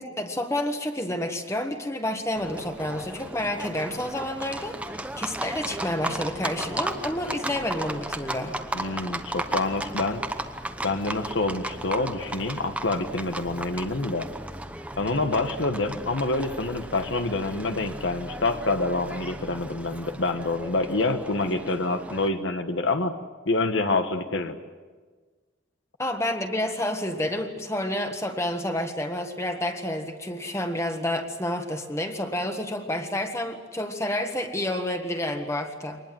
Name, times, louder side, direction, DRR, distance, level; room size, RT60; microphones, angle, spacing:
voice 1, 0.0-8.6 26.0-36.0, left 1 dB, 15° left, 5 dB, 1.5 m, -29 dB
Livestock farm animals working animals, 2.4-22.3, right 1 dB, 5° right, 0.9 m, -35 dB
voice 2, 8.7-10.2 10.8-14.3 15.0-23.1 23.5-24.6, left 2 dB, 75° left, 7 dB, 1.3 m, -27 dB
24.0 x 20.0 x 7.6 m, 1.4 s
head